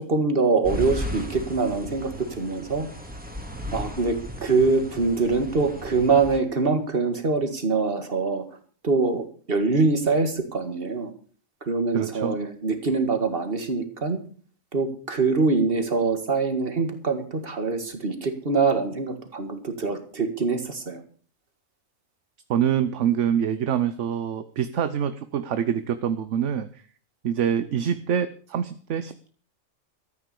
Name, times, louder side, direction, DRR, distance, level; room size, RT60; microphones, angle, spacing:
voice 1, 0.1-2.9 3.7-8.4 8.8-11.1 11.7-14.2 14.7-21.0, right 4 dB, 45° right, 8 dB, 2.1 m, -24 dB
sound 1, 0.6-6.4, left 1 dB, 5° right, 2.3 m, -35 dB
voice 2, 11.9-12.4 22.5-26.7 27.2-29.3, right 9 dB, 65° right, 12 dB, 1.1 m, -25 dB
13.5 x 9.3 x 6.9 m, 0.43 s
omnidirectional pair, 1.4 m